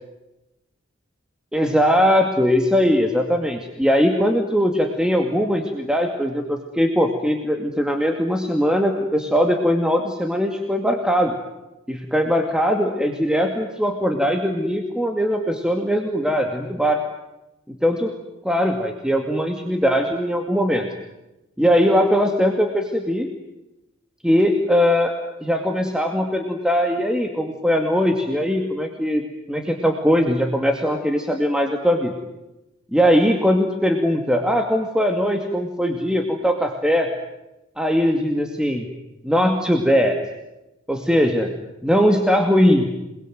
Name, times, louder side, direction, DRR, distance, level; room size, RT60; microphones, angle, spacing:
voice 1, 1.5-11.3 11.9-17.0 17.8-18.1 18.4-20.9 21.6-23.3 24.2-25.1 25.4-29.2 29.5-32.1 32.9-37.1 37.8-38.9 39.2-40.2 40.9-41.5 41.8-42.9, equal, 5° right, 3 dB, 2.3 m, -20 dB
29.0 x 21.5 x 9.3 m, 0.96 s
head